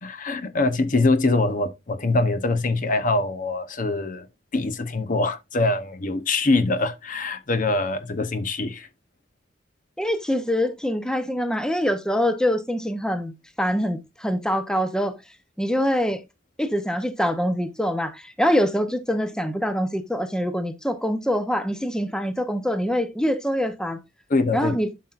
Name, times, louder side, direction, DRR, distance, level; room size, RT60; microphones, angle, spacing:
voice 1, 0.0-4.3 4.5-8.9 24.3-24.8, left 2 dB, 45° left, 0.8 m, -23 dB
voice 2, 10.0-13.3 13.6-15.2 15.6-16.2 16.6-24.0 24.5-24.9, equal, 5° left, 0.7 m, -24 dB
11.5 x 5.7 x 2.4 m
head